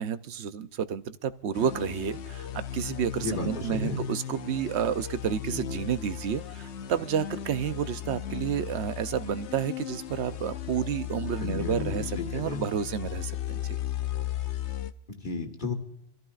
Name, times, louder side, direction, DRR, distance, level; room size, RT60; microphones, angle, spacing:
voice 1, 0.0-13.8, right 8 dB, 80° right, 12 dB, 0.9 m, -30 dB
sound 1, 1.5-14.9, left 11 dB, 85° left, 1.0 m, -36 dB
voice 2, 3.2-4.0 11.4-12.6 15.1-15.7, left 3 dB, 45° left, 4 dB, 1.8 m, -33 dB
25.5 x 14.5 x 2.4 m, 0.86 s
omnidirectional pair, 1.1 m